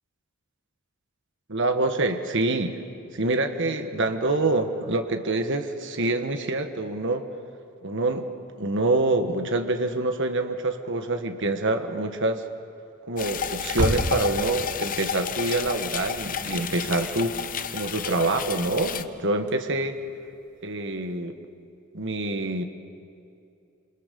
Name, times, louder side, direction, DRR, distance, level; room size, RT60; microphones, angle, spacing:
voice 1, 1.5-2.8 3.1-7.2 7.8-8.3 8.6-12.4 13.1-20.0 20.6-21.4 21.9-22.6, right 2 dB, 55° right, 6 dB, 1.5 m, -26 dB
sound 1, 13.2-19.0, left 8 dB, 40° left, 0.8 m, -32 dB
sound 2, 13.6-20.4 20.7-20.8 21.1-21.2, equal, 90° right, 2.7 m, -34 dB
28.0 x 27.5 x 6.9 m, 2.6 s
head